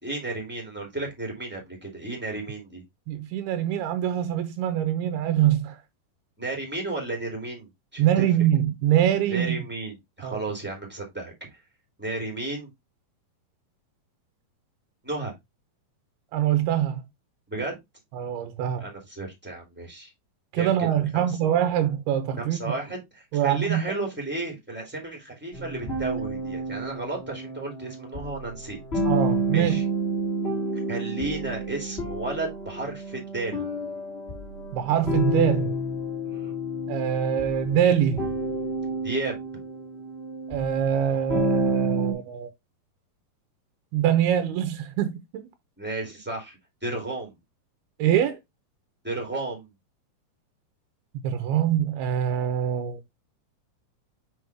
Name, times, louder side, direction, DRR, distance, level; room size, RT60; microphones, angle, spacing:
voice 1, 0.0-2.8 6.4-8.5 9.3-11.5 12.0-12.7 15.0-15.3 17.5-17.7 18.8-20.1 20.5-21.3 22.4-28.8 29.5-29.8 30.7-33.7 36.2-36.5 39.0-39.4 45.8-47.4 49.0-49.7, right 2 dB, 5° right, 2.3 m, -33 dB
voice 2, 3.1-5.8 8.0-9.6 10.2-10.4 16.3-17.0 18.1-18.9 20.5-22.6 23.3-23.8 29.0-29.8 34.7-35.7 36.9-38.3 40.5-42.5 43.9-45.4 48.0-48.4 51.2-53.0, right 10 dB, 85° right, 2.8 m, -24 dB
sound 1, 25.5-42.1, right 1 dB, 20° left, 1.7 m, -30 dB
6.4 x 5.1 x 3.4 m
omnidirectional pair, 4.5 m